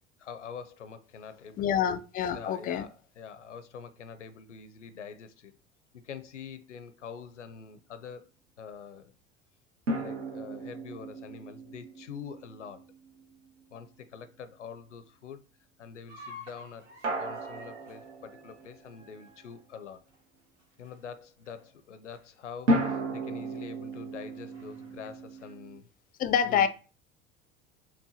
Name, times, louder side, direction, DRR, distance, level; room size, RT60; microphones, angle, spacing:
voice 1, 0.2-2.0 2.3-5.5 5.9-8.2 8.6-9.1 9.9-12.9 13.7-15.4 15.8-16.9 17.2-20.0 20.8-25.9 26.4-26.7, left 6 dB, 85° left, 0.5 m, -45 dB
voice 2, 1.6-2.9 26.2-26.7, left 8 dB, 25° left, 0.4 m, -26 dB
sound 1, 9.9-13.2 17.0-19.0 22.7-25.8, right 1 dB, 80° right, 0.7 m, -34 dB
sound 2, 16.1-21.2 21.5-21.8 22.1-22.2 22.9-23.0 23.9-25.5, left 2 dB, 45° right, 1.4 m, -52 dB
5.8 x 2.1 x 2.8 m
figure-of-eight pair, 70°, 35 cm